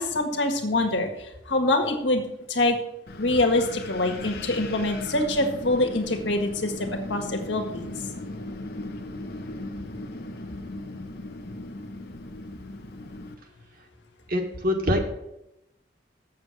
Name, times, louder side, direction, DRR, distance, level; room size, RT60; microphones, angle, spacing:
voice 1, 0.0-2.2 2.5-2.8 3.2-7.8, left 2 dB, 75° left, 4 dB, 1.7 m, -25 dB
Wind, 3.1-13.3, left 2 dB, 55° left, 1.0 m, -37 dB
voice 2, 14.3-15.1, left 1 dB, 50° right, 2 dB, 1.7 m, -24 dB
8.0 x 7.1 x 6.3 m, 0.88 s
head